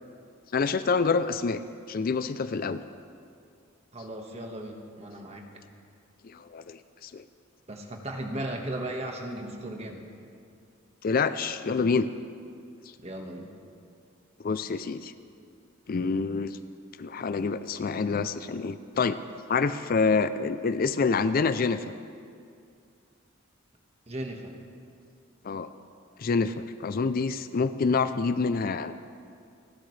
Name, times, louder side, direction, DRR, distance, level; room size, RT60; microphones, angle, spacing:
voice 1, 0.5-1.6 1.9-2.8 6.2-7.2 11.0-12.1 14.4-15.1 15.9-16.6 17.0-19.2 19.5-21.8 25.4-25.7 26.2-28.9, left 4 dB, 45° left, 12 dB, 0.4 m, -27 dB
voice 2, 3.9-5.5 7.7-10.1 13.0-13.5 24.1-24.5, right 1 dB, 30° right, 2 dB, 1.5 m, -36 dB
29.0 x 11.5 x 3.3 m, 2.3 s
head